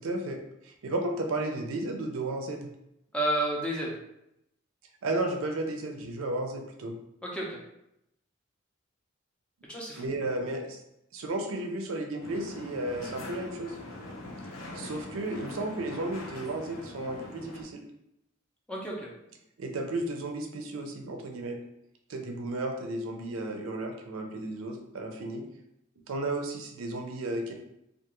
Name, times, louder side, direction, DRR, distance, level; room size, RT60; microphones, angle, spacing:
voice 1, 0.0-0.4 0.6-2.7 5.0-6.9 9.9-10.8 11.1-13.7 14.7-17.8 19.6-21.6 22.1-25.4 26.1-27.5, right 2 dB, 80° right, 3 dB, 0.5 m, -33 dB
voice 2, 3.1-4.0 7.2-7.6 9.7-10.1 18.7-19.1, right 1 dB, 5° left, -3 dB, 0.4 m, -31 dB
sound 1, 12.2-17.6, left 2 dB, 85° left, 0.6 m, -43 dB
2.4 x 2.3 x 2.9 m, 0.82 s
head